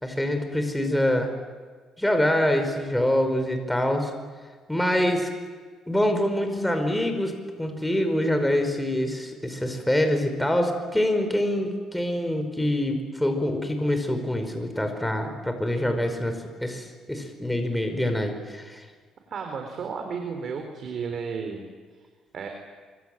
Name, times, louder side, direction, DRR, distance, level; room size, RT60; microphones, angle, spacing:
voice 1, 0.0-1.3 2.0-4.1 4.7-5.3 5.9-18.8, left 1 dB, 5° left, 6 dB, 5.0 m, -25 dB
voice 2, 19.3-21.6 21.9-22.0 22.3-22.5, right 5 dB, 50° right, 4 dB, 4.2 m, -33 dB
25.5 x 25.0 x 9.2 m, 1.6 s
cardioid pair, 120°, 0 cm